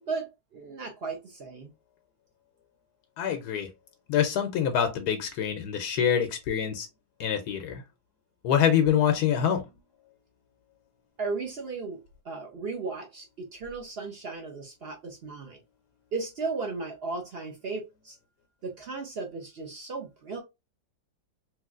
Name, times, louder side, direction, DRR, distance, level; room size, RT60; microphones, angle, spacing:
voice 1, 0.1-1.7 11.2-15.6 16.1-18.2 18.6-20.4, right 4 dB, 55° right, 0.7 m, -35 dB
voice 2, 3.2-3.7 4.1-6.9 7.2-7.8 8.4-9.7, left 9 dB, 85° left, 1.1 m, -25 dB
3.1 x 3.0 x 2.4 m
omnidirectional pair, 1.7 m